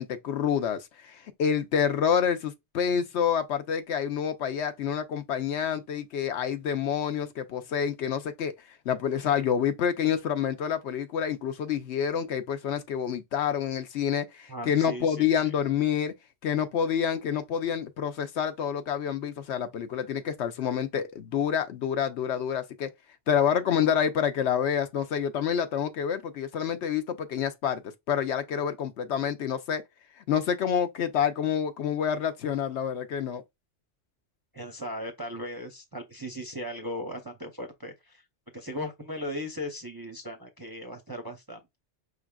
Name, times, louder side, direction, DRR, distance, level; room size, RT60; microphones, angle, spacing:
voice 1, 0.0-8.5 8.9-16.1 16.4-22.9 23.3-29.8 30.3-33.4, left 8 dB, 70° left, 0.9 m, -28 dB
voice 2, 14.5-15.5 34.5-38.2 38.5-41.8, equal, 30° right, 0.5 m, -37 dB
5.1 x 3.4 x 2.3 m
omnidirectional pair, 1.2 m